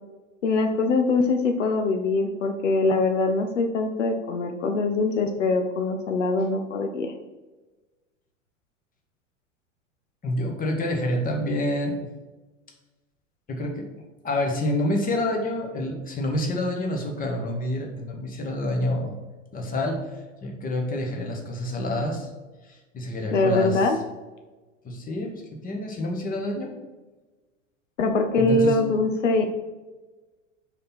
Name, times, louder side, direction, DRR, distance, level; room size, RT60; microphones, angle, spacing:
voice 1, 0.4-7.1 23.3-24.0 28.0-29.5, left 3 dB, 75° left, 5 dB, 0.8 m, -23 dB
voice 2, 10.2-12.1 13.5-13.9 14.2-19.2 19.5-20.0 20.4-22.3 22.7-23.9 24.8-25.3 25.6-26.7 28.3-28.8, left 1 dB, 20° left, 1 dB, 1.5 m, -27 dB
5.2 x 4.4 x 5.7 m, 1.2 s
hypercardioid pair, 95°, 37 cm